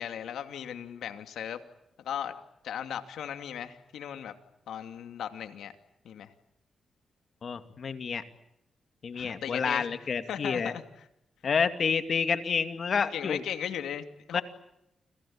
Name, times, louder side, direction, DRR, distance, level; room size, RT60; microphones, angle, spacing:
voice 1, 0.0-1.6 2.0-2.3 2.6-4.3 4.7-5.7 6.0-6.3 9.1-9.9 10.3-10.8 13.1-14.4, left 9 dB, 85° left, 8 dB, 2.6 m, -37 dB
voice 2, 7.4-8.2 9.0-10.7 11.4-13.4 14.3-14.4, left 6 dB, 60° left, 9 dB, 2.5 m, -29 dB
29.5 x 22.0 x 8.8 m, 0.81 s
cardioid pair, 70°, 0 cm